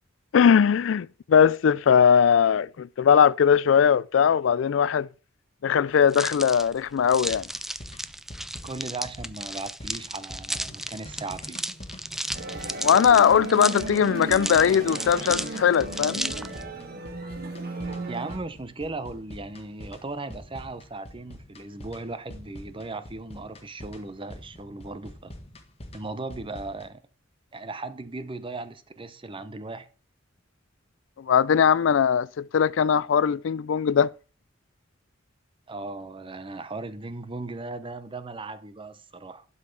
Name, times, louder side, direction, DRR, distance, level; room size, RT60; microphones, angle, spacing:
voice 1, 0.3-5.1 5.6-7.5 12.8-16.2 31.2-34.1, left 7 dB, 70° left, 0.4 m, -20 dB
sound 1, 6.1-16.6, right 1 dB, ahead, 0.3 m, -34 dB
sound 2, 7.3-26.9, left 1 dB, 30° left, 1.5 m, -45 dB
voice 2, 8.6-11.6 18.1-25.3 25.9-27.0 27.5-29.9 35.7-39.4, right 3 dB, 25° right, 0.7 m, -37 dB
sound 3, 12.3-18.4, right 2 dB, 50° right, 1.7 m, -35 dB
11.5 x 5.6 x 4.6 m
head